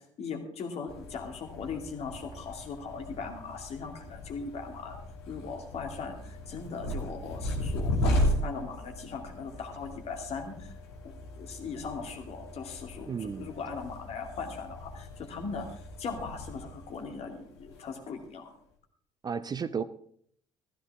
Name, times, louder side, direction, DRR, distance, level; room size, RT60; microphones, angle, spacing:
voice 1, 0.2-5.0 5.3-10.8 11.0-18.5, left 5 dB, 45° left, 3 dB, 2.5 m, -39 dB
sound 1, 0.9-18.3, equal, 70° left, 2.5 m, -36 dB
voice 2, 13.1-13.5 19.2-19.8, right 6 dB, 25° right, 14 dB, 0.6 m, -33 dB
15.0 x 14.0 x 3.6 m, 0.62 s
figure-of-eight pair, 50°, 15 cm